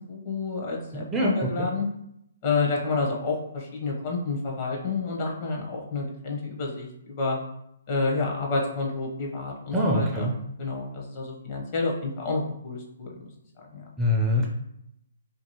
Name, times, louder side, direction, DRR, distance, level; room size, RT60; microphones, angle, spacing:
voice 1, 0.1-1.9 2.4-7.4 7.9-10.3 10.6-13.1 13.7-13.9, left 3 dB, 35° left, -1 dB, 0.7 m, -29 dB
voice 2, 0.9-1.7 9.7-10.3 14.0-14.5, left 1 dB, 10° right, -3 dB, 0.4 m, -24 dB
2.7 x 2.6 x 2.8 m, 0.78 s
hypercardioid pair, 150°, 0 cm